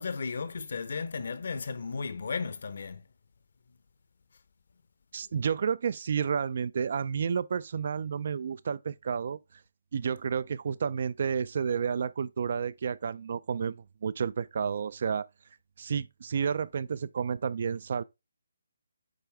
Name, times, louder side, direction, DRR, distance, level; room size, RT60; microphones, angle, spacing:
voice 1, 0.0-3.0, left 5 dB, 60° left, 0.8 m, -34 dB
voice 2, 5.1-9.4 9.9-15.3 15.8-18.0, right 6 dB, 50° right, 0.3 m, -31 dB
9.1 x 3.4 x 3.4 m
figure-of-eight pair, 155°, 0 cm